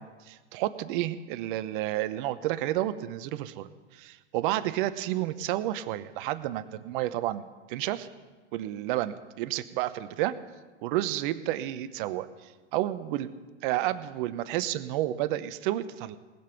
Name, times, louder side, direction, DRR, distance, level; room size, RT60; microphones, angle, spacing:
voice 1, 0.0-8.1 8.5-10.3 10.8-13.3 13.6-16.2, right 14 dB, 45° right, 13 dB, 0.9 m, -31 dB
19.5 x 7.0 x 5.9 m, 1.3 s
hypercardioid pair, 120°, 35 cm